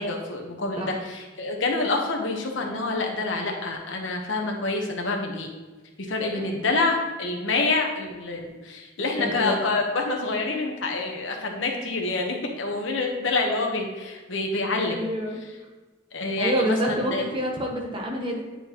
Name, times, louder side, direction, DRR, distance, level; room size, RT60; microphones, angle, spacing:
voice 1, 0.0-5.5 6.0-15.0 16.1-17.2, left 3 dB, 75° left, 1 dB, 1.0 m, -27 dB
voice 2, 6.4-6.7 9.2-9.6 14.8-15.4 16.4-18.5, equal, 25° right, 0 dB, 1.0 m, -28 dB
9.2 x 4.3 x 2.9 m, 1.3 s
head